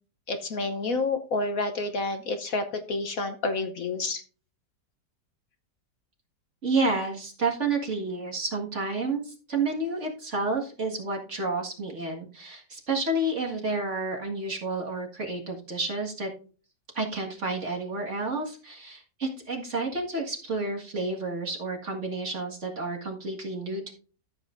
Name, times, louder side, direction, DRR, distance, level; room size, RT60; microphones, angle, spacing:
voice 1, 0.3-4.2, left 3 dB, 55° left, 7 dB, 1.2 m, -29 dB
voice 2, 6.6-16.3 16.9-23.9, right 3 dB, 45° right, 0 dB, 2.1 m, -30 dB
14.0 x 7.9 x 2.6 m, 0.38 s
omnidirectional pair, 1.9 m